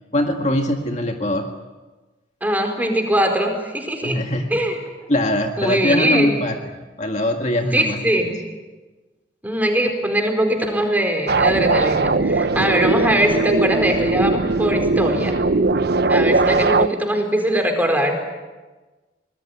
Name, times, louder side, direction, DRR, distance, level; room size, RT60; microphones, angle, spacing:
voice 1, 0.1-1.4 4.0-4.6 5.1-8.0 12.5-12.7, left 1 dB, 40° left, 3 dB, 1.9 m, -22 dB
voice 2, 2.4-4.2 4.5-4.8 5.6-6.4 7.7-8.4 9.4-15.4 16.1-18.2, right 1 dB, 10° right, 4 dB, 4.5 m, -21 dB
sound 1, 11.3-16.9, right 3 dB, 60° right, 0.8 m, -19 dB
24.5 x 20.0 x 9.9 m, 1.2 s
head